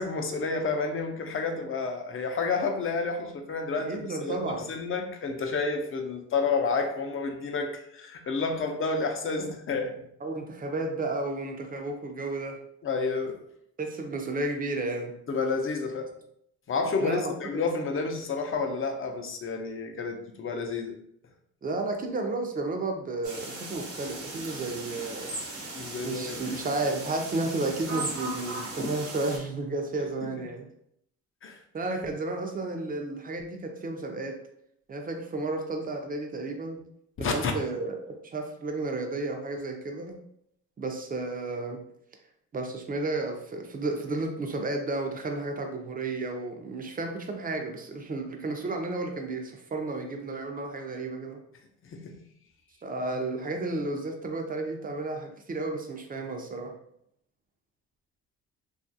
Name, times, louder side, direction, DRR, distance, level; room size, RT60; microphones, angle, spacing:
voice 1, 0.0-9.9 12.8-13.4 15.3-16.1 16.7-20.9 25.8-26.4 30.2-30.3 31.4-31.6 37.2-37.5 51.8-52.2, left 4 dB, 45° left, 4 dB, 0.6 m, -30 dB
voice 2, 3.8-4.6 10.2-12.6 13.8-15.1 17.0-17.6 21.6-25.3 26.0-30.7 31.7-34.4 34.9-36.8 37.2-40.2 40.8-41.8 42.5-51.4 52.8-56.8, right 2 dB, 30° right, 3 dB, 0.5 m, -32 dB
sound 1, 23.2-29.4, right 2 dB, 70° right, 1.0 m, -37 dB
2.8 x 2.4 x 2.7 m, 0.72 s
cardioid pair, 90°, 30 cm